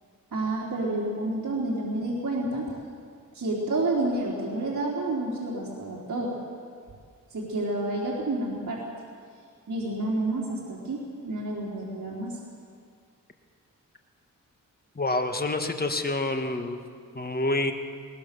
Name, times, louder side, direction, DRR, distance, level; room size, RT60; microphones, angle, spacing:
voice 1, 0.3-2.7 3.3-6.3 7.3-8.8 9.7-12.4, right 2 dB, 60° right, -6 dB, 3.8 m, -29 dB
voice 2, 14.9-16.8 17.1-17.7, left 2 dB, 30° left, 6 dB, 1.7 m, -27 dB
21.5 x 19.5 x 6.9 m, 2.1 s
wide cardioid pair, 100°, 33 cm